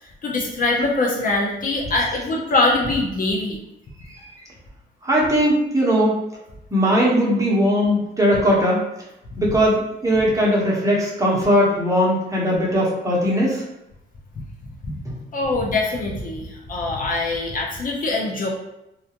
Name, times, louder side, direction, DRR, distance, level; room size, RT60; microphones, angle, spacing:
voice 1, 0.0-3.6 14.8-14.9 15.3-18.5, left 2 dB, 45° left, -2 dB, 0.6 m, -23 dB
voice 2, 5.0-6.2 6.7-8.8 9.4-13.6 15.0-15.1, equal, 15° right, -4 dB, 0.9 m, -19 dB
2.3 x 2.2 x 2.8 m, 0.87 s
cardioid pair, 90°, 20 cm